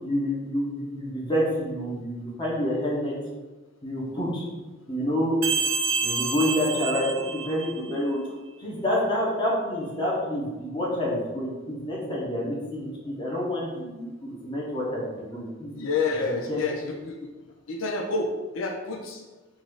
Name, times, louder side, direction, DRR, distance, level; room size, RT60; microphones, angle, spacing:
voice 1, 0.0-3.1 3.8-4.4 4.9-5.4 6.0-8.2 8.6-15.7 16.5-16.6, equal, 25° left, -5 dB, 1.1 m, -28 dB
sound 1, 5.4-8.0, right 4 dB, 85° right, 0.6 m, -28 dB
voice 2, 15.7-17.3 17.7-19.2, left 3 dB, 90° left, 2 dB, 0.5 m, -29 dB
4.1 x 2.6 x 4.6 m, 1.2 s
head